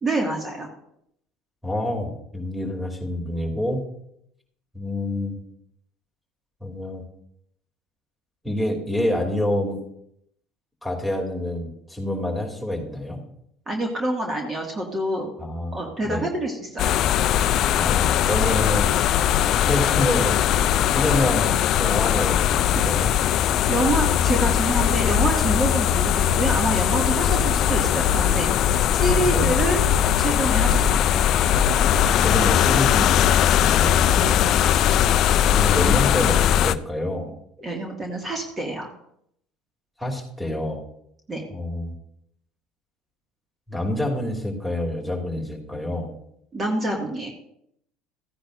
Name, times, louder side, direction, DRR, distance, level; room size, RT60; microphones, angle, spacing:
voice 1, 0.0-0.7 13.7-15.3 15.7-17.0 23.7-29.8 30.2-31.1 34.2-34.3 37.6-38.9 41.3-41.5 46.5-47.3, right 1 dB, 25° right, 1 dB, 2.0 m, -26 dB
voice 2, 1.6-3.9 4.7-5.4 6.6-7.0 8.4-9.8 10.8-13.2 15.4-16.3 17.7-19.0 19.6-20.4 20.9-23.1 27.2-27.6 29.2-29.5 32.0-34.1 35.5-37.3 40.0-40.8 41.5-41.9 43.7-46.1, left 1 dB, ahead, -1 dB, 2.8 m, -27 dB
sound 1, 16.8-36.7, left 10 dB, 55° left, 0.4 m, -20 dB
15.0 x 10.0 x 2.6 m, 0.74 s
hypercardioid pair, 75°, 0 cm